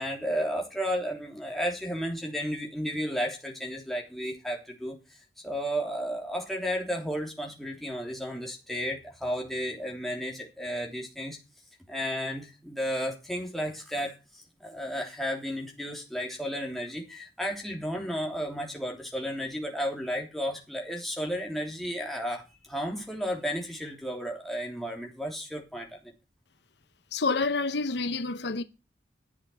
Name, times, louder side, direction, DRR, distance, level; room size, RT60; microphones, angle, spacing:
voice 1, 0.0-4.9 5.4-11.4 11.9-26.0, equal, ahead, 3.3 m, -33 dB
voice 2, 27.1-28.6, left 3 dB, 75° left, 0.8 m, -28 dB
11.0 x 8.0 x 7.8 m
head